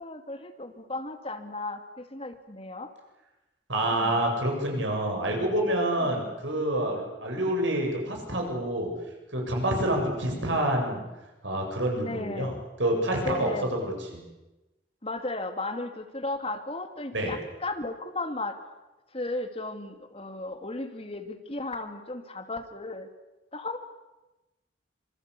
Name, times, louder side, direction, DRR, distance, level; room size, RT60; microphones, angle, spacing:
voice 1, 0.0-2.9 3.9-4.2 6.0-6.2 11.9-12.6 13.2-13.7 15.0-18.6 19.1-23.1 23.5-23.8, left 2 dB, 30° left, 6 dB, 2.6 m, -35 dB
voice 2, 3.7-8.9 9.3-11.0 11.4-12.5 12.8-14.2 17.1-17.3, right 1 dB, 80° right, 1 dB, 7.9 m, -27 dB
26.0 x 25.5 x 8.5 m, 1.0 s
head